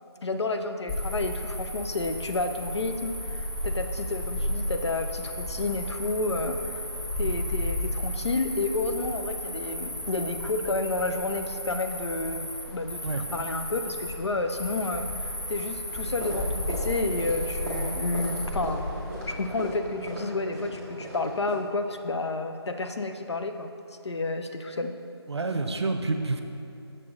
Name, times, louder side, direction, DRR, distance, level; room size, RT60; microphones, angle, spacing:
voice 1, 0.2-6.9 7.2-18.8 19.3-23.7 24.0-24.9, left 3 dB, 75° left, 7 dB, 0.6 m, -30 dB
Cricket, 0.9-19.8, left 1 dB, 10° left, 0.9 m, -33 dB
sound 1, 15.9-21.6, equal, 5° right, 0.5 m, -38 dB
voice 2, 25.3-26.4, right 3 dB, 75° right, 6 dB, 0.7 m, -28 dB
6.7 x 6.4 x 3.7 m, 2.7 s
figure-of-eight pair, 160°, 14 cm